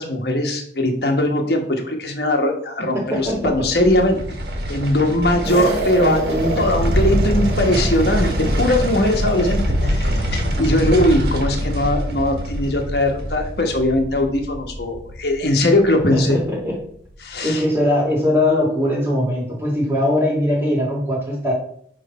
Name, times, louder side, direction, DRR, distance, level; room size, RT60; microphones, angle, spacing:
voice 1, 0.0-4.2 4.7-6.2 6.6-16.4 17.2-17.6, left 1 dB, 65° left, 3 dB, 1.3 m, -20 dB
voice 2, 2.9-3.4 6.0-6.6 16.1-16.8 17.4-21.5, left 1 dB, 15° right, -3 dB, 2.2 m, -21 dB
sound 1, 3.2-16.4 16.7-16.8, equal, 65° right, 1.5 m, -24 dB
sound 2, 5.4-9.9, right 2 dB, 35° right, 1.4 m, -29 dB
9.9 x 3.3 x 4.2 m, 0.63 s
head